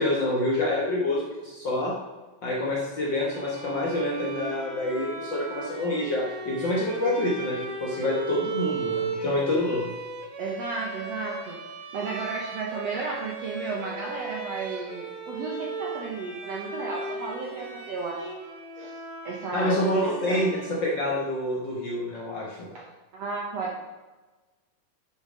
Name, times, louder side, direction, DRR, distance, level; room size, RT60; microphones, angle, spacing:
voice 1, 0.0-1.9 2.4-9.9 19.5-22.7, left 1 dB, 85° left, -4 dB, 1.0 m, -27 dB
Bowed string instrument, 3.3-21.1, right 4 dB, 90° right, 3.8 m, -37 dB
voice 2, 10.4-11.6 11.9-18.3 18.8-18.9 19.2-20.5 22.7-22.9 23.1-23.8, right 4 dB, 70° right, -2 dB, 1.6 m, -33 dB
8.3 x 7.2 x 5.0 m, 1.2 s
omnidirectional pair, 4.3 m